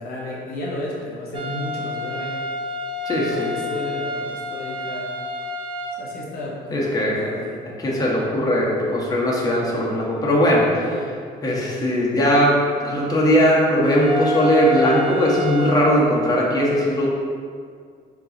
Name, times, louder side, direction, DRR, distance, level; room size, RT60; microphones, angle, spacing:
voice 1, 0.0-2.4 3.1-5.1 6.0-7.6 10.9-11.1, left 1 dB, 65° left, -3 dB, 1.0 m, -33 dB
sound 1, 1.3-6.0 13.9-15.9, left 1 dB, 30° right, 0.4 m, -29 dB
voice 2, 3.0-3.5 6.7-7.2 7.6-10.9 11.4-17.1, equal, 20° left, -5 dB, 0.9 m, -19 dB
3.8 x 2.4 x 3.9 m, 2.1 s
cardioid pair, 110°, 17 cm